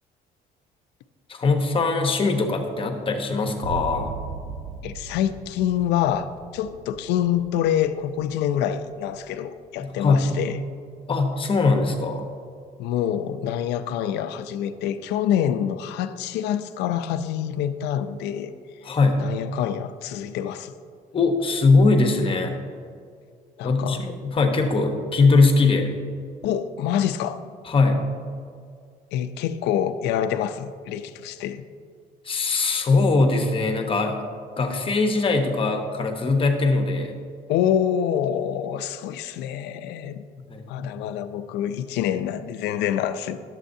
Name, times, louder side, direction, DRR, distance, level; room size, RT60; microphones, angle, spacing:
voice 1, 1.3-4.1 9.8-10.3 11.1-12.2 18.8-19.2 21.1-22.5 23.6-25.9 27.6-28.0 32.2-34.2 34.6-37.2 40.5-40.9, left 3 dB, 30° left, 5 dB, 0.9 m, -21 dB
sound 1, 3.6-11.0, right 5 dB, 45° right, 0.7 m, -38 dB
voice 2, 4.8-10.6 12.8-18.5 19.2-20.7 23.6-24.0 26.4-27.4 29.1-31.6 37.5-40.2 40.7-43.4, left 10 dB, 85° left, 11 dB, 0.5 m, -26 dB
11.0 x 7.5 x 2.7 m, 2.1 s
cardioid pair, 110°, 17 cm